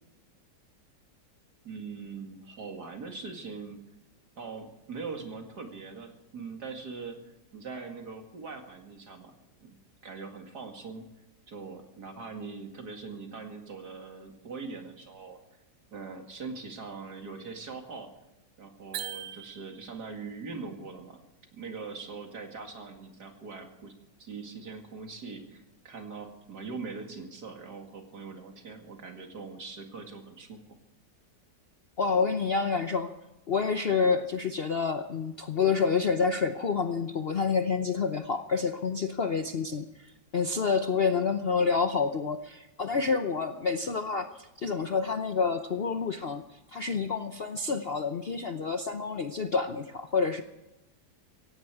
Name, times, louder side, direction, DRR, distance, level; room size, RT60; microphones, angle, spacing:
voice 1, 1.6-3.8 4.4-9.3 9.6-11.1 11.5-15.4 15.9-18.1 18.6-21.2 21.5-23.9 24.2-30.6, right 4 dB, 60° right, 4 dB, 2.7 m, -42 dB
sound 1, 18.9-20.1, right 12 dB, 85° right, 1.5 m, -40 dB
voice 2, 32.0-33.1 33.5-46.4 46.7-50.4, left 5 dB, 50° left, 8 dB, 0.7 m, -28 dB
17.0 x 16.5 x 4.8 m, 0.97 s
omnidirectional pair, 1.9 m